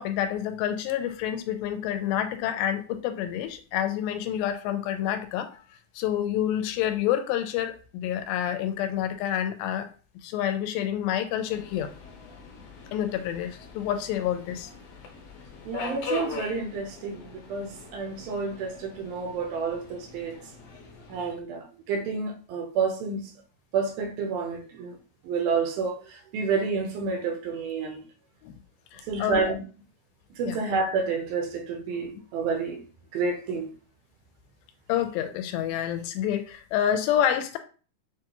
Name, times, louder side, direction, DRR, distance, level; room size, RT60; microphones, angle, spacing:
voice 1, 0.0-5.6 6.0-9.9 10.2-11.9 12.9-14.7 28.4-28.5 28.9-29.4 30.5-30.6 34.9-37.6, left 10 dB, 85° left, 2.3 m, -28 dB
Subway metro underground, 11.5-21.3, left 3 dB, 70° left, 2.2 m, -41 dB
voice 2, 15.6-20.4 21.1-23.3 23.7-25.0 25.2-28.0 29.1-29.6 30.4-32.8 33.1-33.7, right 4 dB, 80° right, 2.5 m, -29 dB
6.5 x 2.3 x 2.9 m
omnidirectional pair, 4.2 m